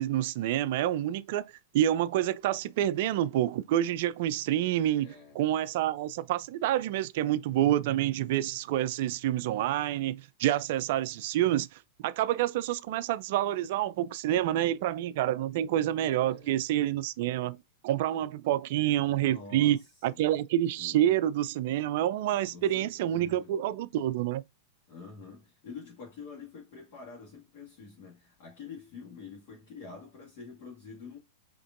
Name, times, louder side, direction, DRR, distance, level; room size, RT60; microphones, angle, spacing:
voice 1, 0.0-5.1 5.4-17.6 17.8-24.4, right 12 dB, 50° right, 0.3 m, -28 dB
voice 2, 5.0-5.4 16.3-16.5 19.2-20.2 20.8-21.1 22.5-23.6 24.9-31.2, left 5 dB, 45° left, 1.7 m, -47 dB
5.0 x 2.9 x 2.5 m
figure-of-eight pair, 95°, 0 cm